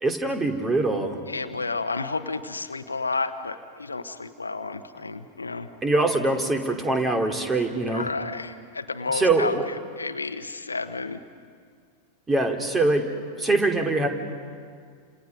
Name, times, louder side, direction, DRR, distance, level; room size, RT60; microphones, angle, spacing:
voice 1, 0.0-1.2 5.8-8.0 9.1-9.6 12.3-13.1 13.4-14.1, right 2 dB, 15° right, 4 dB, 2.7 m, -23 dB
voice 2, 1.3-5.7 7.9-11.2, left 3 dB, 80° left, 10 dB, 1.0 m, -31 dB
29.0 x 27.5 x 5.4 m, 2.1 s
figure-of-eight pair, 90°, 0 cm